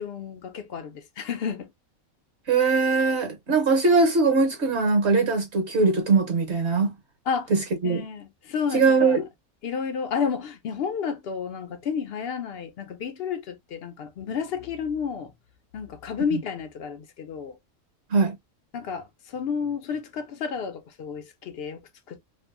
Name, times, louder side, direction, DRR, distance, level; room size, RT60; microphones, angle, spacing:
voice 1, 0.0-1.7 7.3-7.5 7.8-9.2 9.6-15.3 15.7-17.6 18.7-22.2, left 6 dB, 65° left, 0.6 m, -31 dB
voice 2, 2.5-6.9 7.5-8.0 8.7-9.3 18.1-18.3, right 4 dB, 60° right, 1.1 m, -21 dB
2.6 x 2.6 x 2.3 m
omnidirectional pair, 1.4 m